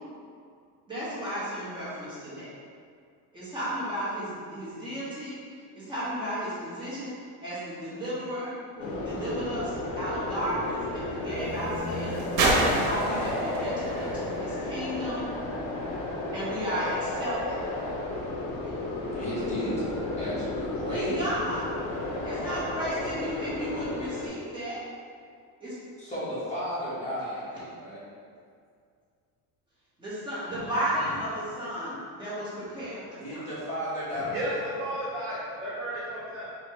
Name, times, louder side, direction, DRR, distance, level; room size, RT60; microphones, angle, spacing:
voice 1, 0.9-2.6 3.3-7.1 7.4-15.2 16.3-17.6 18.6-18.7 20.9-21.7 22.2-24.8 25.6-25.8 30.0-33.5, equal, 10° right, -11 dB, 1.4 m, -34 dB
sound 1, 8.8-24.3, left 2 dB, 50° left, 0.7 m, -33 dB
sound 2, 9.0-15.4 16.2-16.3, right 2 dB, 80° right, 1.0 m, -31 dB
voice 2, 19.1-21.2 26.0-28.0 33.2-34.5, equal, 15° left, -11 dB, 1.4 m, -34 dB
voice 3, 34.1-36.5, right 1 dB, 35° right, -8 dB, 0.7 m, -34 dB
4.4 x 3.1 x 3.1 m, 2.2 s
cardioid pair, 155°, 41 cm